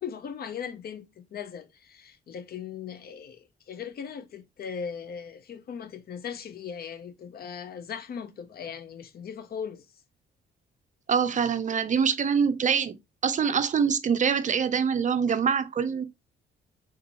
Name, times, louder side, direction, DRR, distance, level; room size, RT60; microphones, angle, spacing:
voice 1, 0.0-9.9, left 7 dB, 50° left, 0.6 m, -38 dB
voice 2, 11.1-12.9 13.2-16.0, right 6 dB, 40° right, 0.5 m, -24 dB
3.7 x 2.6 x 2.8 m
cardioid pair, 90°, 20 cm